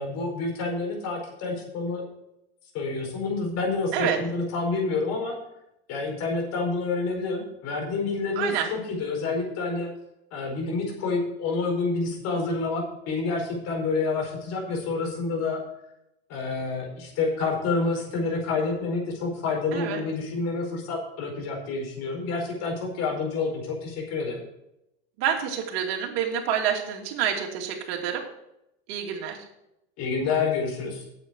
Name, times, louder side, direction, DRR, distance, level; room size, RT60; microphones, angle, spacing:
voice 1, 0.0-2.0 2.7-5.3 5.9-9.9 10.3-15.6 16.3-24.4 30.0-31.0, left 3 dB, 55° left, 1 dB, 4.8 m, -28 dB
voice 2, 8.4-8.7 19.7-20.0 25.2-28.3 28.9-29.4, right 9 dB, 65° right, 1 dB, 2.7 m, -27 dB
8.9 x 8.1 x 6.1 m, 0.82 s
hypercardioid pair, 105°, 32 cm